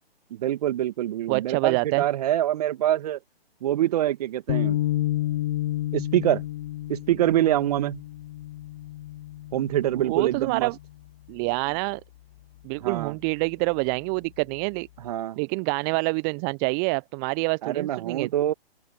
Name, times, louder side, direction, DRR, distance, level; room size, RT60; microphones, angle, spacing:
voice 1, 0.3-3.2 3.6-4.8 5.9-6.4 6.9-8.0 9.5-10.7 12.8-13.1 15.0-15.4 17.6-18.5, right 12 dB, 40° right, 2.4 m, -25 dB
voice 2, 1.3-2.0 10.0-10.8 11.3-12.0 12.6-14.9 15.4-18.3, right 37 dB, 20° right, 1.0 m, -26 dB
sound 1, 4.5-10.9, left 15 dB, 25° left, 0.6 m, -30 dB
open air
figure-of-eight pair, 125°, 31 cm